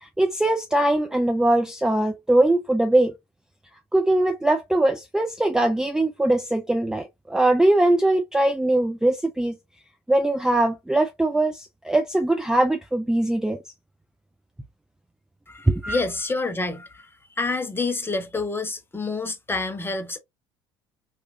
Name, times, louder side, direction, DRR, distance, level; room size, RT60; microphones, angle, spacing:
voice 1, 0.0-3.1 3.9-9.5 10.1-13.6 15.7-16.0, right 1 dB, 5° right, 0.4 m, -21 dB
voice 2, 15.5-17.1 17.4-20.2, left 3 dB, 15° left, 0.8 m, -28 dB
2.9 x 2.4 x 2.5 m
hypercardioid pair, 65°, 13 cm